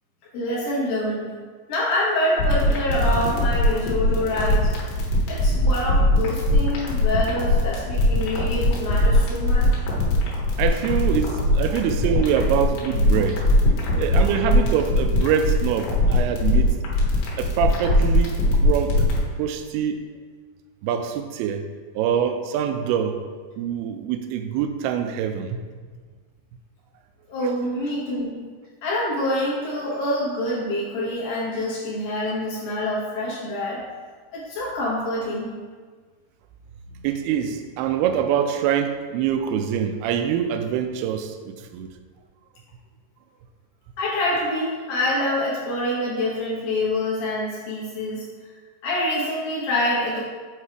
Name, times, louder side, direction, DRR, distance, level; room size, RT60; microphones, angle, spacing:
voice 1, 0.3-1.3 1.7-4.7 5.3-9.8 14.4-14.5 27.3-28.4 28.8-33.8 34.3-35.5 44.0-48.3 48.8-50.2, left 1 dB, 65° left, -6 dB, 2.6 m, -26 dB
sound 1, 2.4-19.2, left 1 dB, 85° left, 3.3 m, -20 dB
voice 2, 10.6-13.5 13.9-16.7 17.4-19.1 19.4-20.0 20.8-21.6 22.0-23.2 23.6-25.6 37.0-41.9, right 8 dB, 85° right, 7 dB, 2.4 m, -24 dB
7.6 x 3.2 x 4.6 m, 1.5 s
omnidirectional pair, 4.7 m